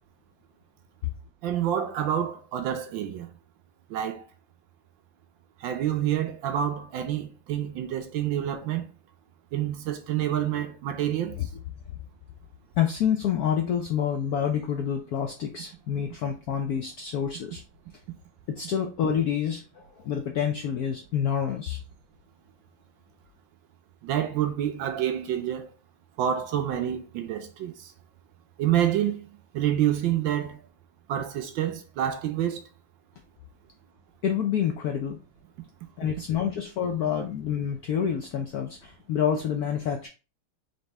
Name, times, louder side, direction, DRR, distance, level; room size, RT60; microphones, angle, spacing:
voice 1, 1.4-3.3 3.9-4.2 5.6-8.8 9.5-11.4 24.0-25.7 26.2-27.9 28.6-29.2 29.5-30.6 31.1-32.6, right 10 dB, 70° right, 1.2 m, -28 dB
voice 2, 12.8-17.6 18.5-21.8 34.2-35.2 36.0-40.1, left 8 dB, 85° left, 0.8 m, -28 dB
4.0 x 3.5 x 3.3 m
omnidirectional pair, 2.3 m